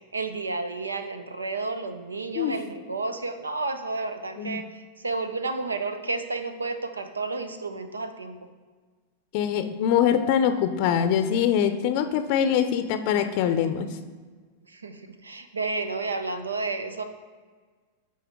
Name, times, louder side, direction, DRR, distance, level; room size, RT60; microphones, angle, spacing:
voice 1, 0.0-8.4 14.7-17.0, right 3 dB, 90° right, 9 dB, 0.6 m, -31 dB
voice 2, 9.3-13.9, left 9 dB, 50° left, 9 dB, 0.5 m, -23 dB
10.0 x 4.2 x 3.6 m, 1.5 s
hypercardioid pair, 100°, 0 cm